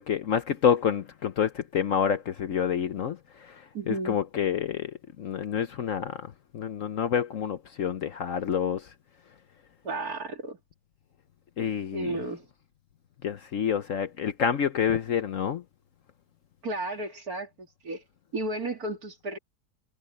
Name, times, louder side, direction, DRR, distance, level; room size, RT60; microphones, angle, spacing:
voice 1, 0.0-4.9 5.2-6.3 6.5-8.9 11.6-12.2 13.2-15.6, left 8 dB, 55° left, 1.0 m, -28 dB
voice 2, 3.7-4.2 9.8-10.6 11.9-12.5 16.6-18.0 18.3-19.4, right 2 dB, 60° right, 3.3 m, -33 dB
omnidirectional pair, 1.8 m